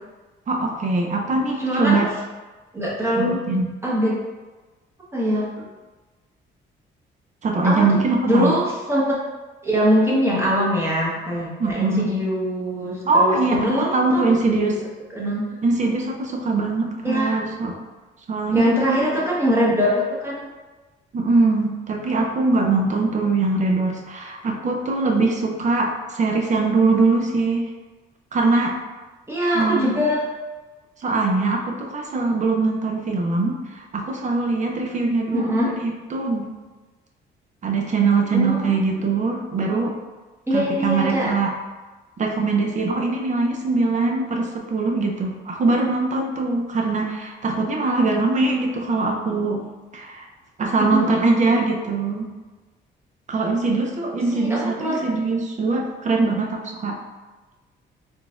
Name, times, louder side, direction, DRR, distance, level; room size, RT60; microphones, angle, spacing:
voice 1, 0.5-2.1 3.1-3.7 7.4-8.6 11.6-12.1 13.0-14.8 15.6-17.8 18.3-18.9 21.1-27.7 28.3-28.8 29.5-30.0 31.0-36.5 37.6-40.0 40.5-41.5 42.2-49.6 49.9-50.3 50.6-52.3 53.3-57.0, right 3 dB, 40° right, 1 dB, 0.6 m, -22 dB
voice 2, 1.6-2.0 2.7-3.3 3.8-4.2 5.1-5.7 7.6-8.0 8.2-9.2 9.6-14.7 15.1-15.4 17.0-17.4 18.5-20.4 29.3-30.2 35.3-35.7 38.3-38.8 40.5-41.3 50.9-51.1 54.3-55.0, equal, 10° right, -6 dB, 0.9 m, -22 dB
3.8 x 2.3 x 2.4 m, 1.2 s
cardioid pair, 90°, 20 cm